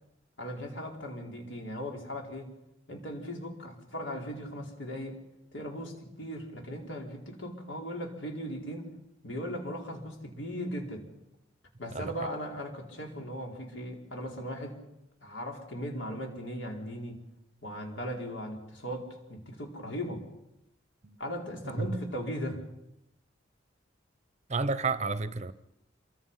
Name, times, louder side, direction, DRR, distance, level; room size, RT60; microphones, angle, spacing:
voice 1, 0.4-2.5 2.9-5.2 5.5-8.9 9.2-11.1 11.8-14.8 15.2-17.2 17.6-20.3 21.2-22.6, equal, 75° left, 4.7 m, -38 dB
voice 2, 24.5-25.5, right 4 dB, 35° right, 0.8 m, -30 dB
27.0 x 23.5 x 5.7 m
head